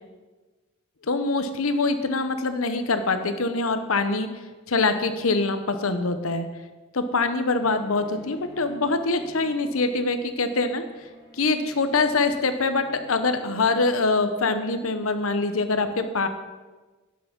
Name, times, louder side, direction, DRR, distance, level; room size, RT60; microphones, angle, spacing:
voice 1, 1.1-4.3 4.7-6.5 6.9-10.8 11.3-16.3, left 3 dB, 85° left, 9 dB, 0.9 m, -24 dB
Bowed string instrument, 7.6-14.7, left 1 dB, 20° left, 2.2 m, -48 dB
11.5 x 6.7 x 5.3 m, 1.3 s
head